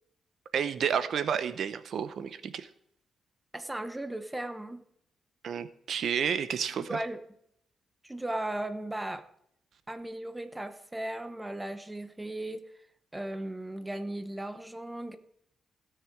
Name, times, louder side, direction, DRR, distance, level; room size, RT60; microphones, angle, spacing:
voice 1, 0.5-2.7 5.4-7.0, right 7 dB, 60° right, 13 dB, 0.7 m, -31 dB
voice 2, 3.5-4.8 6.9-7.2 8.0-9.2 9.9-12.6 13.1-15.2, right 1 dB, 10° right, 9 dB, 0.9 m, -36 dB
17.0 x 6.5 x 4.6 m, 0.70 s
cardioid pair, 145°, 0 cm